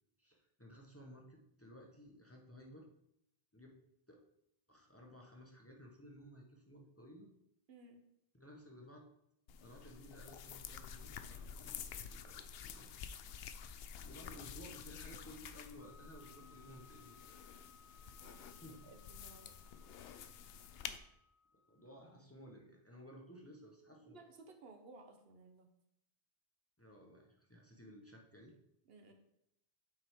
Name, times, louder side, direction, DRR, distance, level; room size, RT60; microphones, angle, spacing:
voice 1, 0.2-2.9 3.5-3.8 4.1-4.2 4.7-7.3 8.3-9.0 9.6-12.9 14.0-17.3 18.4-18.8 21.7-24.2 26.8-28.5, equal, 15° left, 0 dB, 1.0 m, -56 dB
voice 2, 7.7-8.1 18.2-19.6 24.0-25.7 28.9-29.1, right 3 dB, 70° right, 5 dB, 1.2 m, -58 dB
sound 1, 9.5-21.0, left 7 dB, 75° left, 0.8 m, -50 dB
sound 2, 15.8-21.9, left 5 dB, 50° left, 0.4 m, -65 dB
8.1 x 5.9 x 3.7 m, 0.77 s
omnidirectional pair, 1.0 m